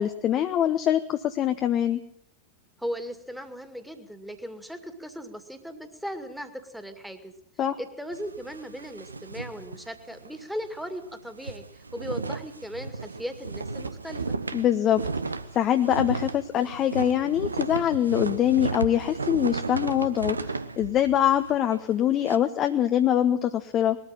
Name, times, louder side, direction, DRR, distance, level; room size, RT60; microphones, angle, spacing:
voice 1, 0.0-2.0 7.6-7.8 14.5-15.0 15.5-24.0, left 10 dB, 30° left, 7 dB, 1.1 m, -24 dB
voice 2, 2.8-7.3 7.8-14.2, equal, ahead, 8 dB, 2.3 m, -37 dB
sound 1, 8.1-10.4 10.7-10.9 11.2-22.4, right 4 dB, 80° right, 1.0 m, -34 dB
21.0 x 14.0 x 9.0 m, 0.68 s
figure-of-eight pair, 90°, 0 cm